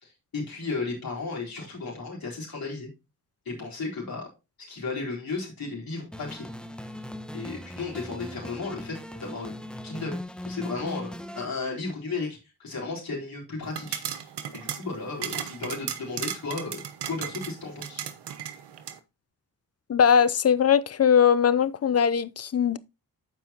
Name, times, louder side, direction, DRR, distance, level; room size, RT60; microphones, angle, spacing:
voice 1, 0.0-2.9 3.5-4.3 4.7-6.5 6.8-6.9 7.3-9.5 9.8-18.0, left 3 dB, 60° left, 4.1 m, -34 dB
sound 1, 6.1-11.4, left 1 dB, ahead, 1.2 m, -39 dB
sound 2, 13.7-19.0, right 9 dB, 75° right, 1.0 m, -36 dB
voice 2, 19.9-22.8, left 7 dB, 35° left, 0.6 m, -20 dB
13.5 x 4.7 x 2.9 m
supercardioid pair, 50°, 41 cm